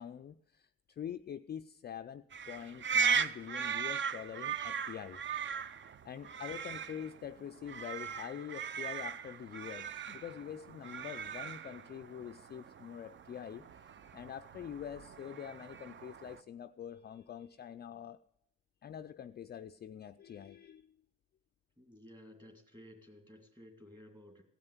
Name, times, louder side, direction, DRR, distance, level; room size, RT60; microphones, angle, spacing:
voice 1, 0.0-5.2 6.0-13.7 14.1-18.2 18.8-21.0, left 9 dB, 35° left, 0.4 m, -45 dB
sound 1, 2.3-16.4, right 6 dB, 40° right, 0.5 m, -38 dB
voice 2, 21.8-24.4, equal, 15° right, 2.0 m, -55 dB
15.5 x 5.5 x 9.5 m
cardioid pair, 90°, 30 cm